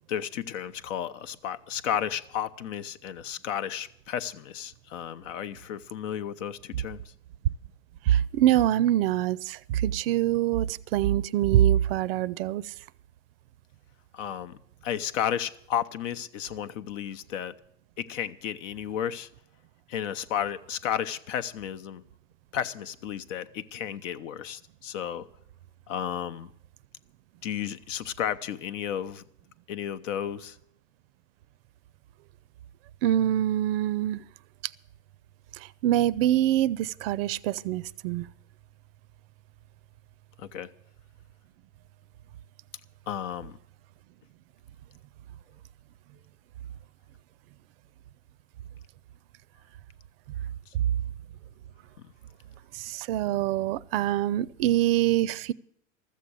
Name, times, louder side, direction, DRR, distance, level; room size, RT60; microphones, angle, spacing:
voice 1, 0.1-7.1 14.1-14.6 14.8-17.6 18.0-19.3 19.9-22.0 22.5-25.3 25.9-26.5 27.4-29.2 29.7-30.6 40.4-40.7 43.1-43.6 50.7-50.8 52.0-52.1, left 9 dB, 70° left, 0.9 m, -33 dB
voice 2, 8.1-12.7 33.0-34.2 35.5-38.3 50.7-50.8 52.7-55.5, right 12 dB, 50° right, 0.4 m, -25 dB
13.5 x 7.6 x 9.9 m
supercardioid pair, 150°, 39 cm